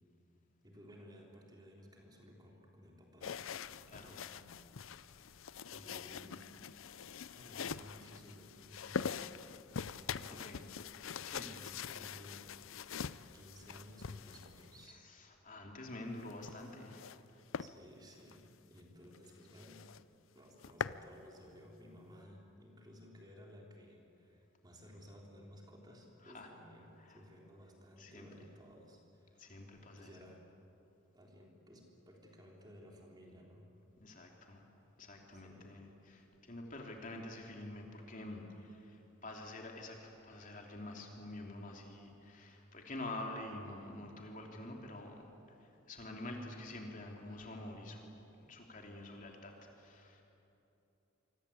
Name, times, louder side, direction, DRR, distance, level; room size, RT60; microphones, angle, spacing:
voice 1, 0.6-3.4 3.7-4.6 5.7-6.5 7.3-9.3 9.9-10.6 11.6-12.9 13.3-15.0 17.6-19.9 20.4-29.6 30.0-30.4 31.1-33.7 35.3-35.8, equal, 20° right, -1 dB, 3.7 m, -57 dB
sound 1, 3.2-14.9 16.2-17.2 17.5-17.7 18.2-18.4 18.8-18.9 19.1-19.2 19.6-20.0 20.4-21.0, left 6 dB, 75° left, 0.6 m, -44 dB
voice 2, 10.3-10.6 11.2-11.7 15.0-17.0 26.2-26.5 27.0-27.2 28.0-28.3 29.4-30.1 34.0-34.6 35.0-48.1 48.4-50.2, left 1 dB, 40° left, 1 dB, 3.1 m, -47 dB
28.0 x 24.0 x 8.5 m, 2.9 s
head